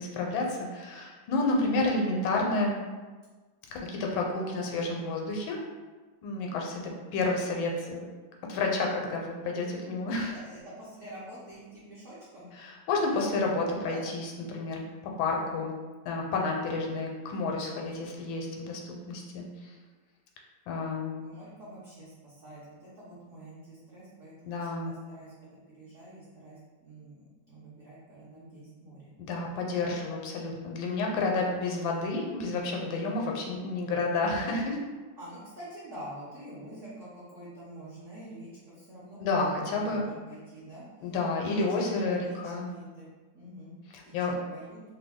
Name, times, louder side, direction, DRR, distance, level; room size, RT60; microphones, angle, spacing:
voice 1, 0.0-2.8 3.7-5.6 6.2-8.1 8.5-10.3 12.6-14.8 15.2-15.7 16.1-19.7 20.7-21.1 24.4-24.9 29.2-34.8 39.2-40.1 41.0-42.7 44.1-44.3, left 3 dB, 80° left, 0 dB, 1.3 m, -30 dB
voice 2, 10.1-12.5 13.8-14.0 21.2-29.1 35.2-39.3 39.6-43.1 43.3-43.8 44.0-44.2 44.5-44.8, right 1 dB, 60° right, -9 dB, 0.8 m, -47 dB
3.1 x 2.2 x 3.5 m, 1.3 s
omnidirectional pair, 2.1 m